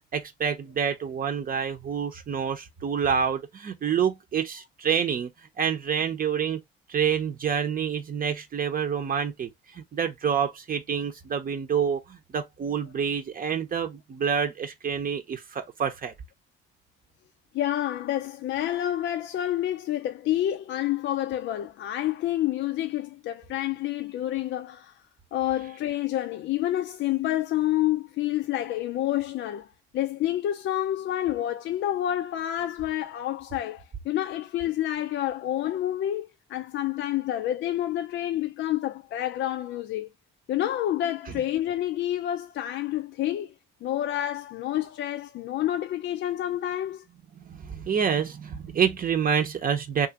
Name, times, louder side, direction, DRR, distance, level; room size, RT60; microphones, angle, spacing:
voice 1, 0.1-5.3 5.6-6.6 6.9-16.1 47.4-50.1, right 7 dB, 45° right, 0.7 m, -27 dB
voice 2, 17.5-25.0 25.3-40.1 40.5-43.5 43.8-47.1, left 12 dB, 70° left, 0.4 m, -28 dB
3.0 x 2.4 x 2.8 m
cardioid pair, 90°, 20 cm